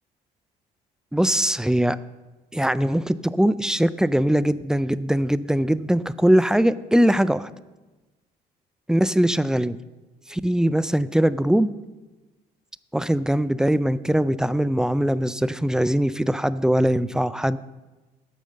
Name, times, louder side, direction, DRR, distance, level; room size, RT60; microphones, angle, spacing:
voice 1, 1.1-2.0 2.5-7.5 8.9-9.8 10.3-11.7 12.9-17.6, equal, 5° right, 16 dB, 0.3 m, -21 dB
9.5 x 8.7 x 6.4 m, 1.2 s
cardioid pair, 110°, 17 cm